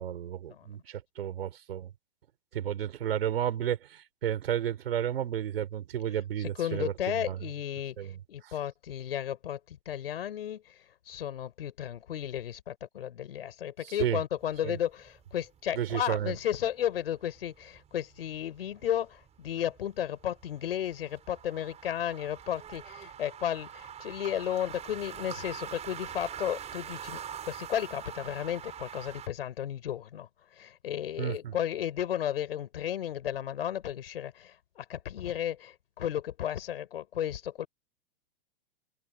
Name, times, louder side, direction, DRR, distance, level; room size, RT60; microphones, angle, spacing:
voice 1, 0.0-1.9 2.5-7.4 8.0-8.2 8.4-8.5 13.8-14.2 14.6-14.8 15.7-16.3 31.2-31.5, right 10 dB, 80° right, 4.9 m, -32 dB
voice 2, 6.4-37.7, left 10 dB, 80° left, 6.2 m, -34 dB
sound 1, 14.4-29.3, right 9 dB, 20° right, 5.9 m, -45 dB
open air
hypercardioid pair, 135°, 29 cm